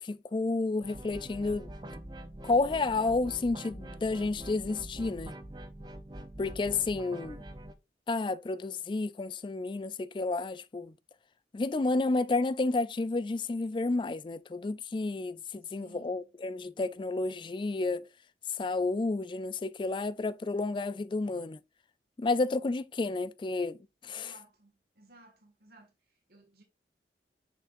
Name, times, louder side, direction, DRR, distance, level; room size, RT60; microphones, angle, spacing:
voice 1, 0.0-1.7 2.4-5.4 6.4-7.4 8.1-10.9 11.5-18.1 18.6-21.6 22.2-23.8 24.0-24.3, left 3 dB, 25° left, 0.3 m, -31 dB
sound 1, 0.8-7.7, right 1 dB, 25° right, 0.7 m, -44 dB
voice 2, 15.6-16.3 24.1-26.6, right 2 dB, 55° right, 2.0 m, -58 dB
6.8 x 5.9 x 2.6 m
head